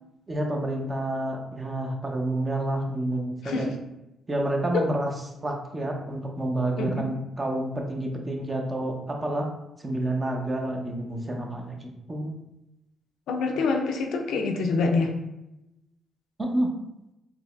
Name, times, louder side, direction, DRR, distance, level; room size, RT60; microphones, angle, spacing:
voice 1, 0.3-3.7 4.3-5.1 5.4-9.5 9.8-12.3 16.4-16.7, right 1 dB, 30° right, 1 dB, 0.8 m, -29 dB
voice 2, 3.4-3.8 4.7-4.8 6.8-7.1 13.3-15.1, left 4 dB, 75° left, 3 dB, 0.4 m, -26 dB
3.9 x 2.9 x 2.5 m, 0.89 s
supercardioid pair, 60°, 0 cm